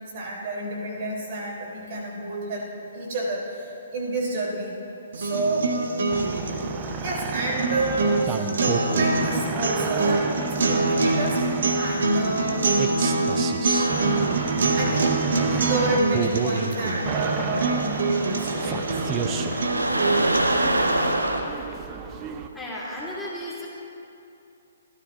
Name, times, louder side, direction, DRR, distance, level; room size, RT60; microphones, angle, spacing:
voice 1, 0.1-4.7 5.1-5.7 7.0-12.7 14.7-18.8 19.1-19.3, right 2 dB, 45° right, -3 dB, 3.5 m, -29 dB
sound 1, 5.1-21.1, right 2 dB, 65° right, 1.7 m, -25 dB
sound 2, 6.1-22.5, right 6 dB, 25° right, 0.8 m, -31 dB
sound 3, 13.7-21.4, right 1 dB, 85° right, 1.3 m, -29 dB
voice 2, 22.5-23.7, left 1 dB, ahead, -9 dB, 3.1 m, -34 dB
27.0 x 13.0 x 2.6 m, 2.6 s
figure-of-eight pair, 130°, 0 cm